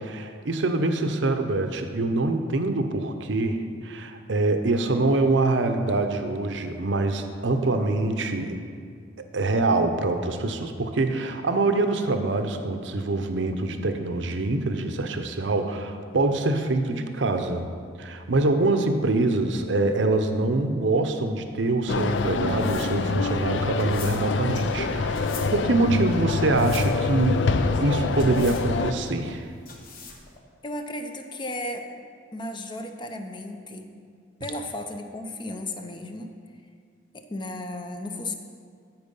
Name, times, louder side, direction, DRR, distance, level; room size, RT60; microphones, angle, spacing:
voice 1, 0.0-8.6 9.3-17.7 18.0-29.5, right 2 dB, 70° right, 7 dB, 0.7 m, -25 dB
sound 1, 21.9-28.9, left 4 dB, 65° left, 0.4 m, -26 dB
sound 2, 22.0-30.4, left 4 dB, 50° left, 1.1 m, -44 dB
voice 2, 30.6-31.9 32.3-33.9 34.4-36.4 37.1-38.3, left 1 dB, 25° left, 6 dB, 0.6 m, -34 dB
13.5 x 4.6 x 5.4 m, 2.2 s
head